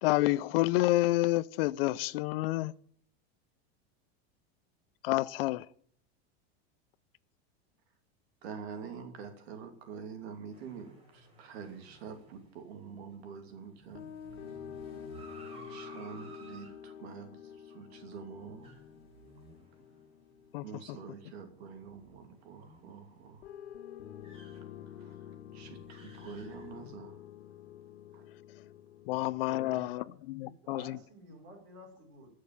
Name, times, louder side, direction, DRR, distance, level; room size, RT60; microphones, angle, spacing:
voice 1, 0.0-2.7 5.0-5.7 20.5-20.6 29.1-31.0, left 18 dB, 65° left, 0.6 m, -29 dB
voice 2, 8.4-14.1 15.7-18.7 20.6-23.5 24.9-27.2 28.1-28.3, right 6 dB, 80° right, 2.9 m, -46 dB
sound 1, 10.5-20.4 20.8-20.9 21.4-27.0, right 2 dB, 20° right, 4.0 m, -56 dB
sound 2, 13.9-22.1 23.4-30.1, left 9 dB, 90° left, 1.7 m, -49 dB
voice 3, 29.5-30.1 30.4-32.3, right 1 dB, 45° right, 5.3 m, -50 dB
15.0 x 6.5 x 8.9 m
supercardioid pair, 170°, 31 cm